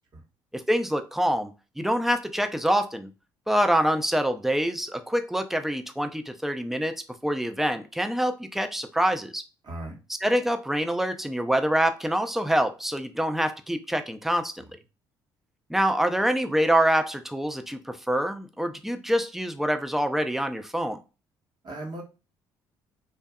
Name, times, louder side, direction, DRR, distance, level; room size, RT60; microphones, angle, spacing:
voice 1, 0.5-3.1 3.5-6.9 7.2-9.4 10.2-14.5 15.7-21.0, equal, 5° right, 7 dB, 0.3 m, -25 dB
voice 2, 9.6-10.0 14.6-14.7 21.6-22.0, right 1 dB, 40° right, -1 dB, 0.9 m, -37 dB
2.5 x 2.2 x 2.2 m, 0.30 s
figure-of-eight pair, 50°, 12 cm